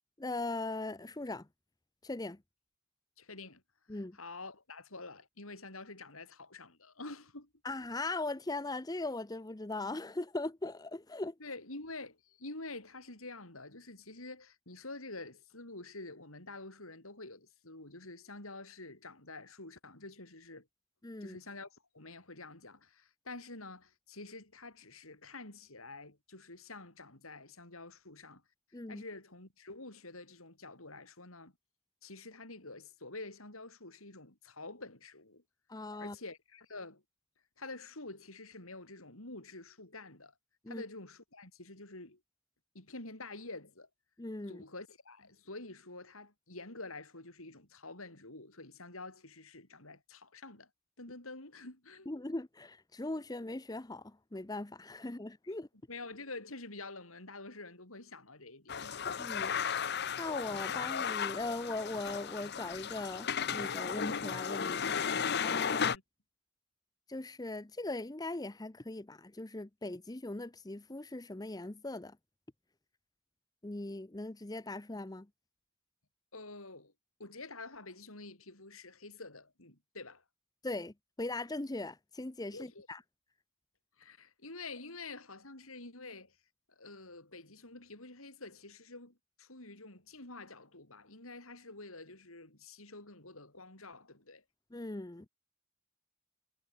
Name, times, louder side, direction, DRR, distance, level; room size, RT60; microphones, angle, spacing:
voice 1, 0.2-1.5 2.0-2.4 3.9-4.2 7.6-11.3 21.0-21.4 28.7-29.0 35.7-36.2 40.6-40.8 44.2-44.6 52.1-55.7 59.2-59.5 60.2-64.9 65.4-65.9 67.1-72.2 73.6-75.3 80.6-83.0 94.7-95.3, left 2 dB, 20° left, 0.7 m, -39 dB
voice 2, 3.2-3.6 3.9-7.5 11.4-20.7 21.2-28.4 28.9-31.5 32.0-35.4 36.0-37.0 37.6-40.3 40.7-42.2 42.7-43.9 44.5-50.7 51.0-52.1 55.4-55.5 55.9-59.0 59.3-59.5 65.7-66.0 76.3-76.9 77.2-80.2 82.5-82.9 84.0-86.4 86.8-94.4, left 2 dB, 85° left, 7.4 m, -48 dB
sound 1, 58.7-66.0, left 7 dB, 50° left, 0.9 m, -34 dB
head